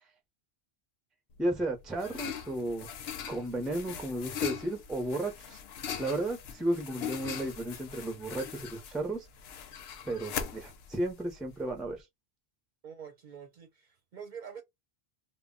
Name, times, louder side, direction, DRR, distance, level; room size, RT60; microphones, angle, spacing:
sound 1, 1.4-12.0, left 8 dB, 75° left, 0.8 m, -41 dB
voice 1, 1.4-2.9 3.3-5.6 6.0-9.2 10.0-12.0, right 1 dB, ahead, 0.4 m, -33 dB
voice 2, 12.8-14.6, right 7 dB, 55° right, 0.6 m, -46 dB
2.2 x 2.0 x 3.6 m
omnidirectional pair, 1.1 m